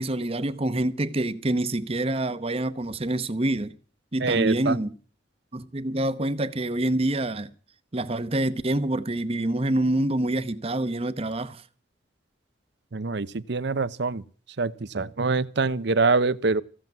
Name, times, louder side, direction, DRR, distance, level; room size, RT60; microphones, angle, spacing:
voice 1, 0.0-3.7 4.1-4.9 5.5-7.5 7.9-11.6, right 1 dB, 30° right, 0.9 m, -26 dB
voice 2, 4.2-4.8 12.9-14.2 14.6-16.6, right 4 dB, 65° right, 0.7 m, -24 dB
15.5 x 7.6 x 9.3 m
head